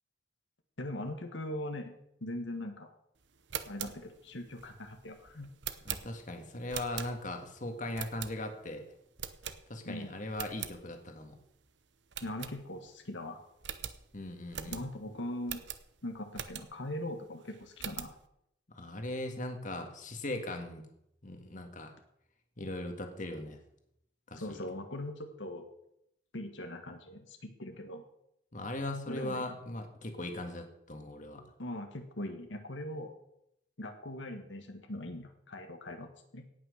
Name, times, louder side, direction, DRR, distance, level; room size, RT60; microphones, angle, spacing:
voice 1, 0.8-2.9 3.7-5.5 9.8-10.1 12.2-13.4 14.7-15.6 16.0-18.1 24.4-25.6 26.3-28.0 29.1-29.5 31.6-33.2 33.8-36.5, left 1 dB, 80° left, 5 dB, 1.6 m, -41 dB
sound 1, 3.3-7.5 7.9-8.7 9.2-10.0 10.3-10.8 11.2-11.3 11.6-11.7 12.1-13.0 13.3-13.4 13.6-16.9 17.4-18.2, right 9 dB, 75° right, 0.9 m, -42 dB
voice 2, 5.8-8.8 9.7-11.4 14.1-14.9 18.7-20.8 21.2-21.9 22.6-23.6 24.3-24.6 28.5-31.4, left 1 dB, 45° left, 5 dB, 1.7 m, -39 dB
17.5 x 6.1 x 6.5 m, 0.77 s
head